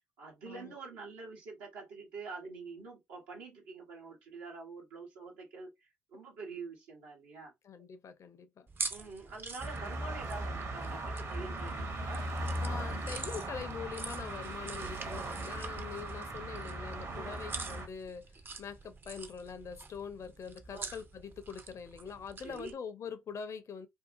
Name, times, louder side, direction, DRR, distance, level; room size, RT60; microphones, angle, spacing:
voice 1, 0.2-7.8 8.9-12.2 17.1-17.4 20.7-20.9 22.4-22.7, right 4 dB, 85° right, 0.9 m, -46 dB
voice 2, 7.6-8.7 12.6-18.3 18.6-23.9, left 6 dB, 50° left, 0.6 m, -44 dB
sound 1, 8.7-22.7, right 4 dB, 35° right, 0.5 m, -46 dB
sound 2, 9.6-17.9, right 1 dB, 50° right, 0.8 m, -38 dB
2.7 x 2.3 x 2.4 m
hypercardioid pair, 45°, 7 cm